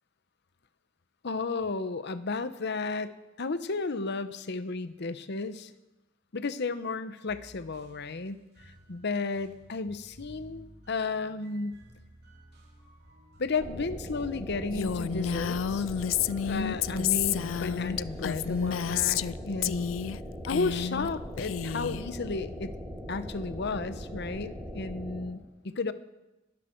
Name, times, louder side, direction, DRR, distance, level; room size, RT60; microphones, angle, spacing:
voice 1, 1.2-5.7 6.3-8.4 8.9-11.8 13.4-15.9 16.4-20.0 20.5-22.7 23.1-25.9, left 3 dB, 60° left, 12 dB, 0.8 m, -33 dB
sound 1, 7.3-19.8, right 1 dB, 60° right, 3.0 m, -54 dB
sound 2, 13.6-25.2, equal, 10° right, 6.3 m, -40 dB
Female speech woman speaking, 14.7-19.3 19.6-20.2 20.4-21.1 21.4-22.0, left 8 dB, 80° left, 0.4 m, -30 dB
21.5 x 12.5 x 4.5 m, 1.0 s
head